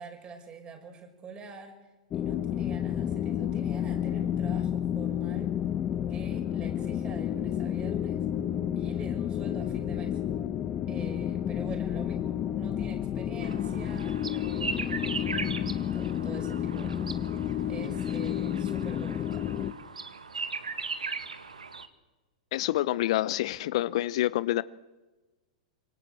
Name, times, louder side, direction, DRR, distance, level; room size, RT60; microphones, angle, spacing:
voice 1, 0.0-1.8 2.1-5.6 6.1-8.3 8.7-10.2 10.9-15.0 15.6-17.2 17.7-19.5, right 4 dB, 25° right, 4 dB, 5.5 m, -46 dB
sound 1, 2.1-19.7, left 10 dB, 30° left, 1.1 m, -31 dB
sound 2, 13.4-21.9, right 4 dB, 85° right, 1.7 m, -38 dB
voice 2, 22.5-24.6, left 15 dB, 55° left, 17 dB, 0.7 m, -27 dB
26.0 x 24.0 x 7.9 m, 1.2 s
figure-of-eight pair, 100°, 4 cm